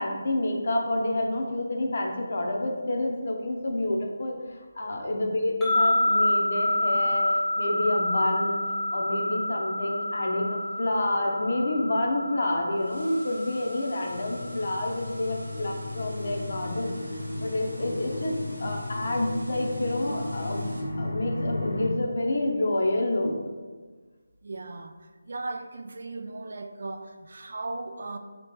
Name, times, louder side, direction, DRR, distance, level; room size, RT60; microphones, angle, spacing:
voice 1, 0.0-23.3, left 1 dB, 55° left, 1 dB, 0.7 m, -28 dB
sound 1, 5.6-14.9, left 1 dB, 5° left, 0.5 m, -28 dB
sound 2, 12.7-20.8, right 1 dB, 85° right, 0.9 m, -50 dB
planet sound, 14.0-21.9, left 2 dB, 80° left, 1.0 m, -34 dB
voice 2, 24.4-28.2, right 2 dB, 60° right, 7 dB, 0.3 m, -37 dB
3.3 x 2.9 x 3.1 m, 1.4 s
figure-of-eight pair, 165°, 0 cm